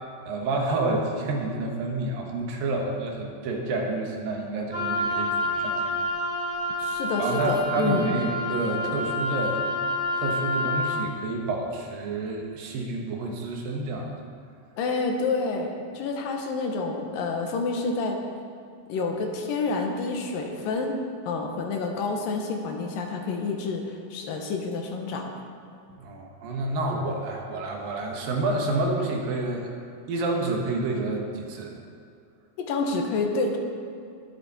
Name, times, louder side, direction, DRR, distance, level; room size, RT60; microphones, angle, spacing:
voice 1, 0.3-6.1 6.7-6.9 7.2-9.6 10.1-14.1 25.9-29.7 30.1-31.7, right 2 dB, 75° right, 1 dB, 3.2 m, -29 dB
Wind instrument woodwind instrument, 4.7-11.0, left 1 dB, 40° right, 3.9 m, -28 dB
voice 2, 6.8-8.1 14.8-18.2 18.9-21.0 21.3-25.3 32.6-33.6, left 3 dB, 75° left, 2 dB, 2.8 m, -28 dB
21.0 x 8.3 x 4.3 m, 2.4 s
omnidirectional pair, 4.1 m